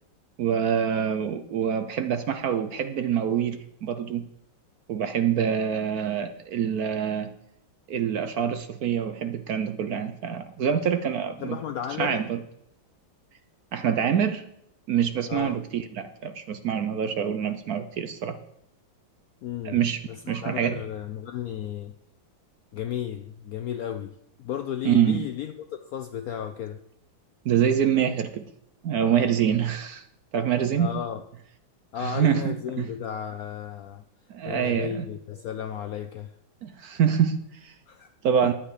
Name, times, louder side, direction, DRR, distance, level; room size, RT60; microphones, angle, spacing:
voice 1, 0.4-4.3 4.9-7.3 7.9-11.6 12.0-12.4 13.7-14.4 14.9-18.4 19.6-20.0 20.3-20.8 24.8-25.3 27.4-28.4 28.8-30.0 30.3-30.9 32.0-32.9 34.3-35.1 36.6-37.7 38.2-38.5, right 8 dB, 60° right, 9 dB, 1.0 m, -25 dB
voice 2, 11.4-12.2 15.3-15.6 19.4-19.8 20.1-22.0 22.7-26.8 30.8-31.2 31.9-34.0 34.4-36.3 37.9-38.1 38.4-38.5, left 9 dB, 70° left, 8 dB, 0.8 m, -34 dB
11.5 x 8.8 x 4.9 m, 0.77 s
omnidirectional pair, 2.1 m